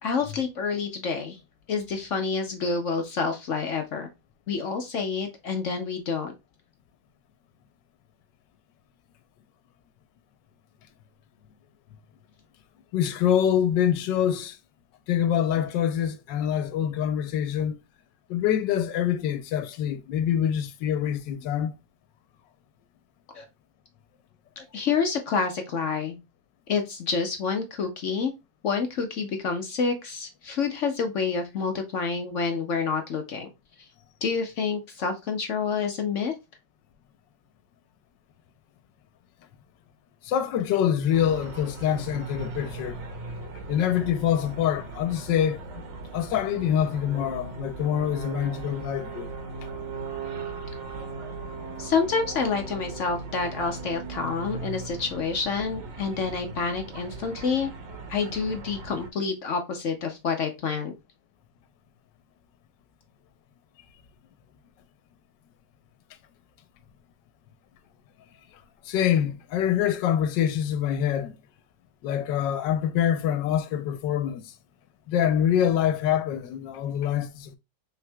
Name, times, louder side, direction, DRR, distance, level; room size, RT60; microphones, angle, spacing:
voice 1, 0.0-1.4 1.7-4.1 4.5-6.3 23.3-23.4 24.6-26.2 26.7-28.3 28.6-33.5 34.2-36.3 51.8-57.7 58.1-60.9, left 5 dB, 60° left, 0.8 m, -28 dB
voice 2, 12.9-14.6 15.1-17.7 18.3-21.7 40.2-43.0 43.7-45.6 46.1-49.3 68.9-71.3 72.0-74.5 75.1-77.6, left 9 dB, 85° left, 1.3 m, -25 dB
sound 1, 41.1-59.1, right 3 dB, 90° right, 1.6 m, -38 dB
5.8 x 3.5 x 2.2 m
omnidirectional pair, 1.9 m